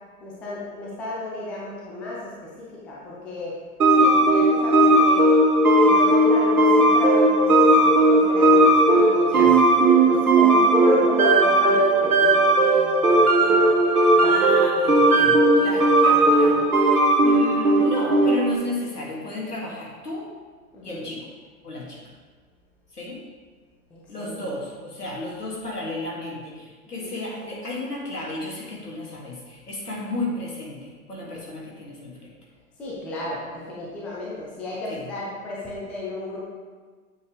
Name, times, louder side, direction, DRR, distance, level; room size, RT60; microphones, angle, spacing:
voice 1, 0.2-3.5 3.9-5.3 5.7-9.5 10.0-14.6 20.7-21.0 24.2-24.4 27.0-27.1 32.8-36.4, left 2 dB, 5° left, -6 dB, 0.4 m, -33 dB
sound 1, 3.8-18.6, right 2 dB, 70° right, 1.5 m, -17 dB
voice 2, 14.2-20.3 20.8-21.3 21.6-22.0 22.9-23.2 24.1-32.3 34.9-35.1, left 2 dB, 75° left, -3 dB, 2.7 m, -33 dB
8.6 x 7.1 x 3.4 m, 1.5 s
figure-of-eight pair, 110°, 46 cm